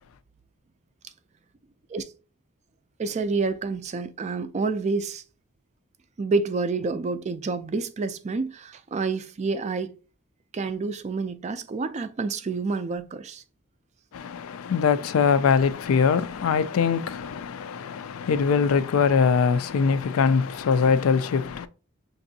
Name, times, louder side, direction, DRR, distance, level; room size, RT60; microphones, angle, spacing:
voice 1, 3.0-5.2 6.2-10.0 10.5-13.4, right 4 dB, 35° right, 0.3 m, -28 dB
voice 2, 14.1-21.7, left 6 dB, 80° left, 0.4 m, -22 dB
5.9 x 2.6 x 2.7 m
head